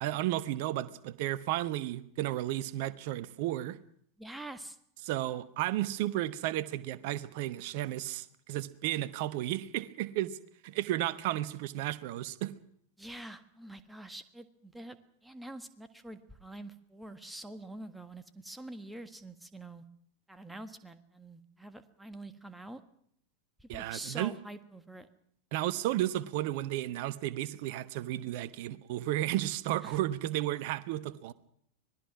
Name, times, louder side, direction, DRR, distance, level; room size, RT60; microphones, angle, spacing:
voice 1, 0.0-3.8 5.0-10.4 10.6-12.5 23.7-24.3 25.5-31.3, right 14 dB, 50° right, 1.1 m, -33 dB
voice 2, 4.2-4.8 13.0-15.0 15.2-19.8 20.3-22.8 23.6-25.1 29.8-30.0, right 1 dB, 5° right, 1.6 m, -46 dB
25.5 x 19.5 x 6.0 m
figure-of-eight pair, 90°, 0 cm